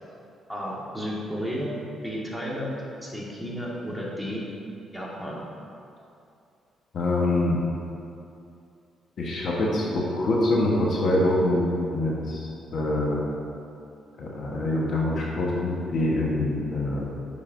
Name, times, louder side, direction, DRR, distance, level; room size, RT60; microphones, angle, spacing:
voice 1, 0.5-4.4 4.9-5.4, equal, ahead, -5 dB, 1.5 m, -33 dB
voice 2, 6.9-7.6 9.2-13.2 14.2-17.1, left 1 dB, 60° left, -3 dB, 1.1 m, -25 dB
9.4 x 5.3 x 2.6 m, 2.6 s
cardioid pair, 85°, 0 cm